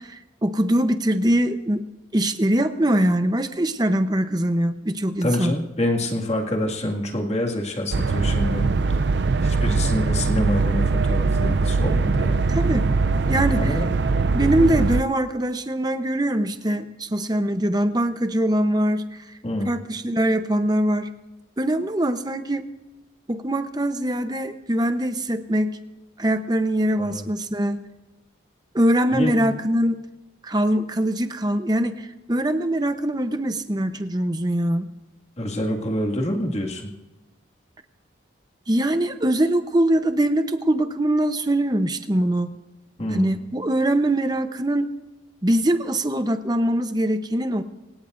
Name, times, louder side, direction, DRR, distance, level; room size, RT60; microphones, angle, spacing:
voice 1, 0.0-5.5 12.5-12.9 13.3-13.8 14.3-19.3 19.7-21.1 21.6-22.7 23.3-25.8 26.2-27.8 28.7-30.0 30.4-34.9 38.7-42.5 43.1-44.9 45.4-47.6, right 1 dB, 20° right, 9 dB, 0.8 m, -22 dB
voice 2, 5.2-8.9 9.4-12.5 13.6-14.0 19.4-19.8 27.0-27.3 29.1-29.6 35.4-36.9 43.0-43.4, left 1 dB, 35° left, 1 dB, 2.1 m, -27 dB
sound 1, 7.9-15.0, right 3 dB, 65° right, 0.5 m, -21 dB
26.5 x 17.0 x 2.6 m, 1.1 s
head